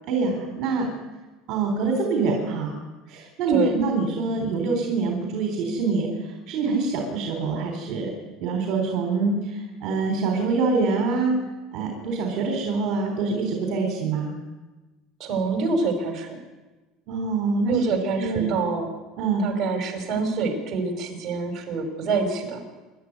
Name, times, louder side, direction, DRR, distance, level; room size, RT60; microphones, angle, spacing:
voice 1, 0.1-0.9 1.5-2.8 3.1-6.1 6.5-8.1 8.4-11.4 11.7-14.4 17.1-17.8 18.2-18.5 19.2-19.4, right 4 dB, 45° right, 2 dB, 3.9 m, -25 dB
voice 2, 15.2-16.4 17.7-18.9 19.4-22.6, right 4 dB, 25° right, 3 dB, 5.3 m, -26 dB
26.0 x 12.0 x 9.6 m, 1.2 s
cardioid pair, 170°, 0 cm